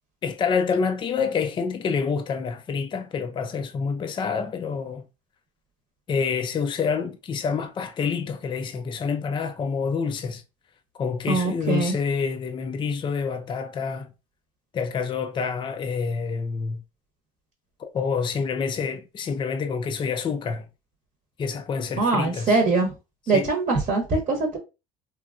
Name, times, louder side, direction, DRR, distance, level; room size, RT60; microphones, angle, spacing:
voice 1, 0.2-5.0 6.1-10.4 11.0-14.1 14.7-16.8 17.8-20.7 21.4-22.6 23.3-23.5, left 5 dB, 25° left, 0.4 m, -27 dB
voice 2, 11.3-11.9 22.0-22.9 23.3-24.6, right 3 dB, 40° right, 0.9 m, -22 dB
3.0 x 2.2 x 2.4 m
cardioid pair, 110°, 19 cm